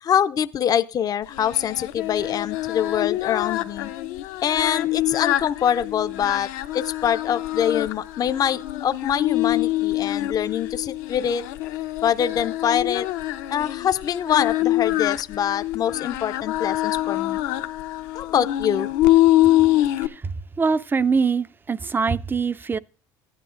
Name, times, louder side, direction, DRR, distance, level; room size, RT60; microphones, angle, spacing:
voice 1, 0.0-3.9 4.4-11.4 12.0-13.1 13.5-17.4 18.1-18.9, left 9 dB, 40° left, 0.5 m, -24 dB
Singing, 1.3-20.1, left 15 dB, 80° left, 0.6 m, -25 dB
voice 2, 20.6-22.8, right 5 dB, 20° right, 0.4 m, -23 dB
14.5 x 10.0 x 2.5 m
supercardioid pair, 85°, 10 cm